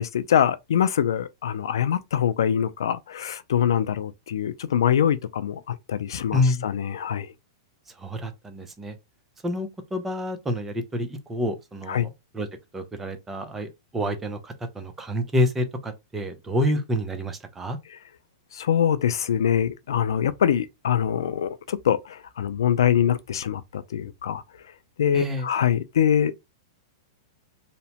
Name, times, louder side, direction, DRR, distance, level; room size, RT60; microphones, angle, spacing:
voice 1, 0.0-7.3 11.9-12.1 18.5-24.4 25.0-26.3, left 9 dB, 85° left, 0.3 m, -24 dB
voice 2, 6.3-6.7 8.0-9.0 9.4-12.5 12.7-17.8 25.1-25.5, left 1 dB, 10° right, 0.4 m, -28 dB
2.8 x 2.1 x 2.8 m
hypercardioid pair, 145°, 2 cm